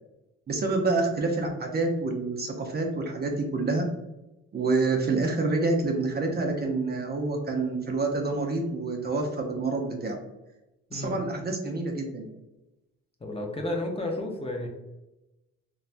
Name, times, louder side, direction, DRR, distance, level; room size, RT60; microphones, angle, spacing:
voice 1, 0.5-3.9 4.5-10.2 10.9-12.3, right 3 dB, 35° right, 2 dB, 0.5 m, -27 dB
voice 2, 13.2-14.7, left 1 dB, 20° left, 1 dB, 0.5 m, -32 dB
3.0 x 2.2 x 2.4 m, 0.98 s
cardioid pair, 90°, 30 cm